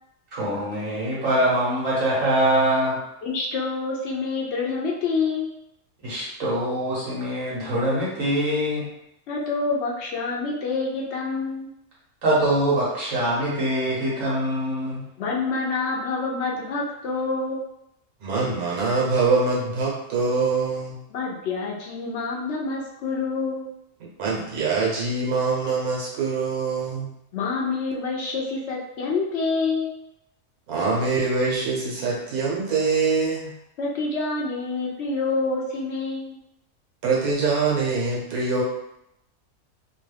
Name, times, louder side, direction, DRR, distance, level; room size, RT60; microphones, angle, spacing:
voice 1, 0.3-3.0 6.0-8.8 12.2-15.0, right 1 dB, 65° right, -7 dB, 1.4 m, -23 dB
voice 2, 3.2-5.5 9.3-11.7 15.2-17.6 21.1-23.7 27.3-29.9 33.8-36.4, left 4 dB, 65° left, -2 dB, 0.7 m, -27 dB
voice 3, 18.2-21.0 24.2-27.1 30.7-33.5 37.0-38.6, right 4 dB, 85° right, -4 dB, 1.4 m, -24 dB
3.0 x 2.3 x 3.3 m, 0.82 s
omnidirectional pair, 1.5 m